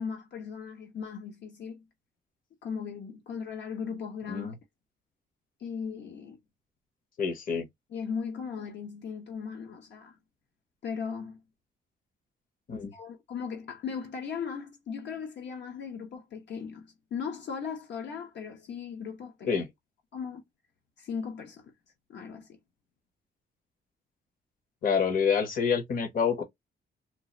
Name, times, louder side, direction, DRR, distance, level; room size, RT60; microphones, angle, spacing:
voice 1, 0.0-1.8 2.6-4.5 5.6-6.4 7.9-10.2 10.8-11.4 12.9-19.5 20.1-20.4 21.0-21.7 22.1-22.5, left 6 dB, 70° left, 0.9 m, -37 dB
voice 2, 7.2-7.7 12.7-12.9 19.5-19.7 24.8-26.4, left 6 dB, 50° left, 1.0 m, -27 dB
3.8 x 2.4 x 2.9 m
wide cardioid pair, 160°, 19 cm